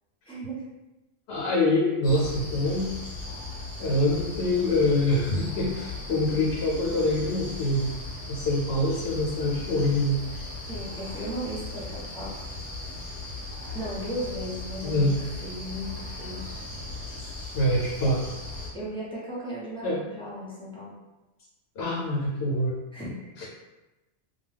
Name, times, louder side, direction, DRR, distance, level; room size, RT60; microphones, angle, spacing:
voice 1, 0.3-0.6 10.7-12.3 13.7-16.4 18.7-20.9 22.9-23.2, right 1 dB, 5° left, -8 dB, 0.5 m, -36 dB
voice 2, 1.3-2.9 3.8-7.9 8.3-10.2 14.8-15.2 17.5-18.2 19.8-20.0 21.8-22.7 23.4-23.5, left 1 dB, 70° left, -4 dB, 0.8 m, -25 dB
sound 1, 2.0-18.7, left 2 dB, 35° left, 0.7 m, -38 dB
2.3 x 2.2 x 3.2 m, 1.1 s
omnidirectional pair, 1.2 m